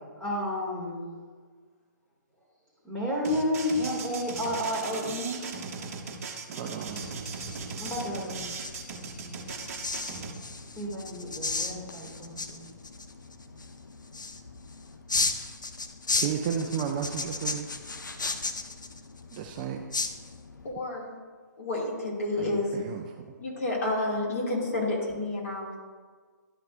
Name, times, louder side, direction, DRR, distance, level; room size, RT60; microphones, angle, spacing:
voice 1, 0.2-1.1 2.8-5.4 7.8-8.5 10.8-12.7, left 1 dB, 5° left, -6 dB, 2.4 m, -31 dB
sound 1, 3.2-10.3, right 5 dB, 45° right, 1.0 m, -38 dB
voice 2, 6.5-7.0 16.2-17.7 19.3-19.8 22.4-23.3, right 7 dB, 25° right, 4 dB, 0.4 m, -33 dB
sound 2, 7.1-20.7, left 3 dB, 80° left, 0.7 m, -35 dB
voice 3, 20.6-21.1 21.6-22.7 23.4-25.7, left 2 dB, 50° left, -3 dB, 2.4 m, -30 dB
12.0 x 5.8 x 2.6 m, 1.5 s
figure-of-eight pair, 135°, 10 cm